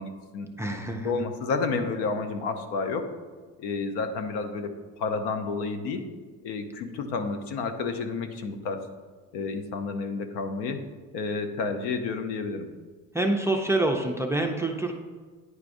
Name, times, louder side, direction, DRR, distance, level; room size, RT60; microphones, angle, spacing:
voice 1, 0.0-0.5 1.0-3.1 3.6-4.7 5.0-6.0 6.4-8.8 9.3-10.8 11.1-12.7, left 4 dB, 85° left, 7 dB, 0.8 m, -30 dB
voice 2, 0.6-1.2 13.1-14.9, right 2 dB, 10° right, 3 dB, 0.4 m, -26 dB
9.6 x 4.7 x 2.6 m, 1.5 s
cardioid pair, 120°, 38 cm